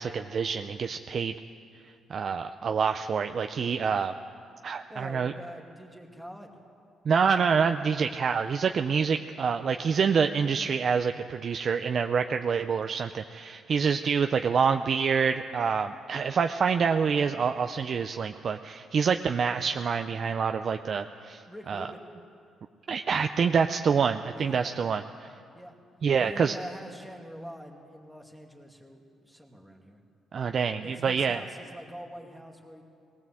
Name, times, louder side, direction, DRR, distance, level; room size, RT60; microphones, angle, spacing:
voice 1, 0.0-1.3 2.1-4.1 4.6-5.3 7.1-21.9 22.9-25.3 26.0-26.5 30.3-31.4, right 6 dB, 50° right, 7 dB, 0.6 m, -27 dB
voice 2, 4.9-6.5 21.5-22.0 24.3-24.7 25.5-25.7 26.2-30.0 30.8-32.8, equal, ahead, 1 dB, 2.7 m, -44 dB
19.5 x 18.0 x 7.7 m, 2.4 s
cardioid pair, 90°, 0 cm